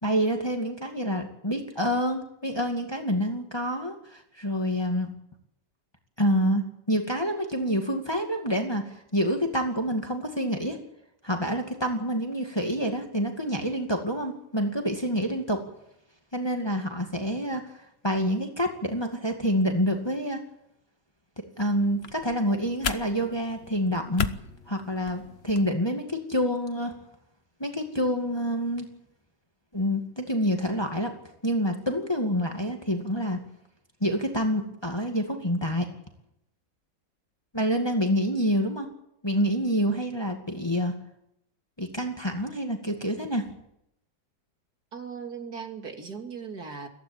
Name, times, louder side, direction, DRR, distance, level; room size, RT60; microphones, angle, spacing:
voice 1, 0.0-5.1 6.2-8.8 9.1-10.8 11.2-15.6 16.3-17.6 18.0-20.4 21.6-24.3 24.7-26.9 27.6-28.9 29.7-31.1 31.4-33.4 34.0-35.9 37.5-38.9 39.2-40.9 41.8-43.4, equal, 15° left, 3 dB, 2.3 m, -27 dB
sound 1, 21.7-25.7, left 7 dB, 45° left, 1.0 m, -36 dB
voice 2, 44.9-46.9, right 6 dB, 60° right, 4 dB, 3.0 m, -38 dB
22.5 x 16.5 x 8.8 m, 0.80 s
omnidirectional pair, 1.9 m